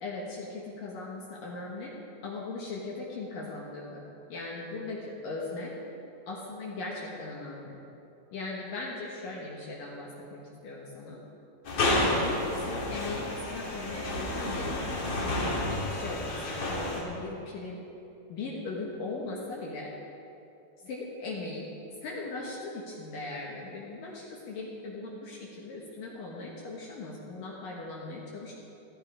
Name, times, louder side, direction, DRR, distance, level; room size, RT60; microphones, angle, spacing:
voice 1, 0.0-2.0 2.2-4.0 4.3-5.7 6.3-7.8 8.3-11.2 12.1-14.9 15.7-17.8 18.3-19.9 20.8-21.7 22.0-28.5, left 3 dB, 65° left, -3 dB, 2.4 m, -39 dB
sound 1, 11.6-17.0, left 1 dB, 45° left, 2.2 m, -30 dB
15.0 x 13.5 x 4.9 m, 2.8 s
omnidirectional pair, 5.5 m